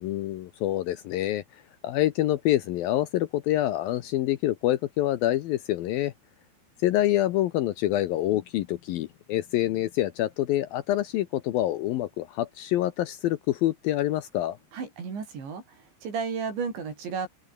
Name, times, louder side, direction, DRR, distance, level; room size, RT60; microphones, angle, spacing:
voice 1, 0.0-6.1 6.8-14.6, left 14 dB, 75° left, 2.3 m, -26 dB
voice 2, 14.7-17.3, right 5 dB, 85° right, 8.5 m, -33 dB
open air
omnidirectional pair, 5.0 m